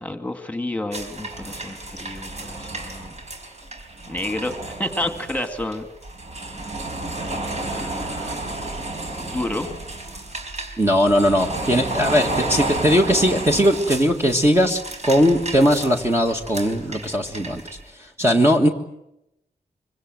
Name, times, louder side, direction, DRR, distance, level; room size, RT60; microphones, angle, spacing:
voice 1, 0.0-3.1 4.1-5.9 7.1-8.4 9.2-9.7, left 1 dB, 10° left, 7 dB, 2.1 m, -30 dB
sound 1, 0.9-17.8, right 2 dB, 45° right, 4.5 m, -32 dB
voice 2, 10.8-17.6 18.2-18.7, equal, 15° right, 2 dB, 1.7 m, -19 dB
25.5 x 24.5 x 7.8 m, 0.84 s
wide cardioid pair, 175°, 16 cm